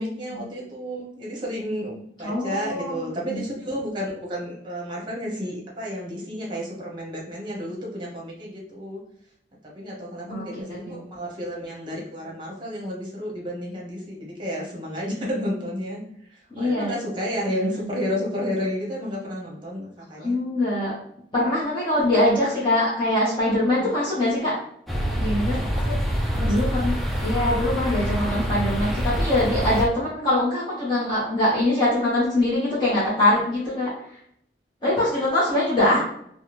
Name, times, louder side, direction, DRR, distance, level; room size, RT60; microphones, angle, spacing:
voice 1, 0.0-9.0 9.7-16.0 16.3-20.3 23.7-23.9 25.7-26.6, equal, 30° right, -3 dB, 0.9 m, -31 dB
voice 2, 2.2-3.5 10.3-11.0 16.5-16.9 17.5-17.9 20.2-20.9 21.3-24.6 25.2-25.6 26.4-26.9 27.2-34.2 34.8-36.0, left 1 dB, 25° left, -9 dB, 0.9 m, -23 dB
sound 1, 24.9-29.9, equal, ahead, 0.4 m, -25 dB
3.4 x 2.1 x 2.9 m, 0.68 s
head